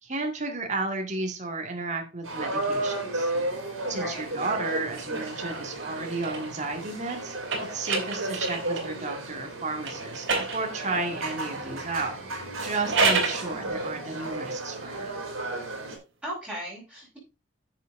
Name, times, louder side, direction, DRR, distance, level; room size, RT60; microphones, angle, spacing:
voice 1, 0.0-3.5 3.9-7.3 7.7-10.3 10.5-12.1 12.6-15.2, right 3 dB, 35° right, 3 dB, 1.9 m, -33 dB
sound 1, 2.2-16.0, right 2 dB, 80° right, 3.8 m, -34 dB
voice 2, 3.8-4.3 13.4-14.0 16.2-17.2, equal, 5° right, -6 dB, 5.1 m, -38 dB
sound 2, 4.9-9.0 9.8-11.2 12.6-13.4, right 4 dB, 65° right, 2.9 m, -30 dB
10.0 x 6.7 x 3.7 m, 0.27 s
head